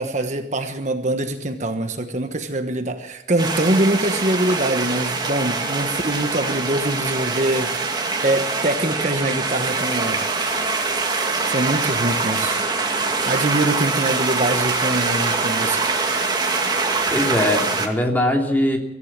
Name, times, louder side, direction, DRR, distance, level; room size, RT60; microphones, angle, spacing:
voice 1, 0.0-10.3 11.1-12.6 13.3-15.9, right 1 dB, 40° right, 7 dB, 1.2 m, -24 dB
sound 1, 3.4-17.9, right 3 dB, 20° right, 2.3 m, -23 dB
voice 2, 16.9-18.8, left 1 dB, 10° left, 2 dB, 3.1 m, -21 dB
24.5 x 15.0 x 7.5 m, 0.94 s
head